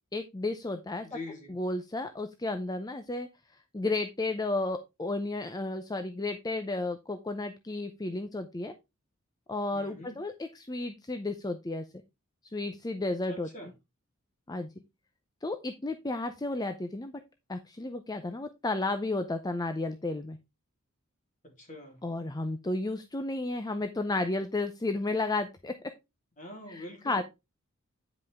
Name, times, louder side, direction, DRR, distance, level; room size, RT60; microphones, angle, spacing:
voice 1, 0.1-1.1 1.5-3.3 3.7-8.7 9.5-11.8 12.5-13.5 14.5-14.7 15.4-17.2 17.5-20.4 22.0-25.7 26.7-27.2, left 2 dB, 20° left, 0.6 m, -33 dB
voice 2, 1.0-1.5 9.7-10.2 13.3-13.7 21.6-22.0 26.4-27.2, left 2 dB, 35° left, 3.4 m, -44 dB
9.5 x 5.5 x 3.5 m
head